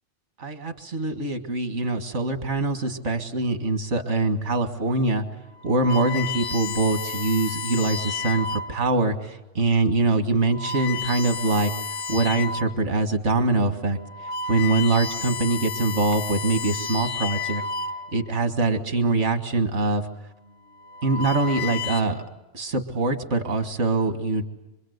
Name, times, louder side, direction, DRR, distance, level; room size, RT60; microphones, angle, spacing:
voice 1, 0.4-5.2 5.6-11.7 12.1-14.0 14.5-17.6 18.1-20.1 21.0-22.2 22.5-24.4, right 3 dB, 75° right, 7 dB, 2.1 m, -23 dB
sound 1, 5.5-8.9 9.6-9.8 10.4-12.8 13.3-13.4 13.9-18.4 19.4-19.8 20.7-22.0, left 4 dB, 80° left, 1.4 m, -32 dB
25.5 x 23.5 x 8.0 m, 1.0 s
omnidirectional pair, 1.2 m